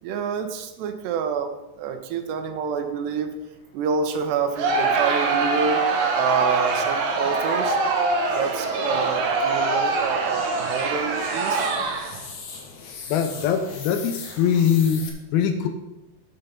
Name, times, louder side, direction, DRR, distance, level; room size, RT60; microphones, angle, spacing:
voice 1, 0.0-1.5 1.8-3.3 3.7-5.8 6.1-7.8 8.3-11.7, right 6 dB, 90° right, 7 dB, 3.0 m, -27 dB
sound 1, 3.5-15.1, left 5 dB, 60° left, 2.1 m, -43 dB
Crowd, 4.6-12.3, right 3 dB, 65° right, 2.1 m, -24 dB
voice 2, 13.1-15.7, left 8 dB, 75° left, 7 dB, 2.4 m, -22 dB
9.6 x 7.1 x 5.2 m, 1.0 s
omnidirectional pair, 4.7 m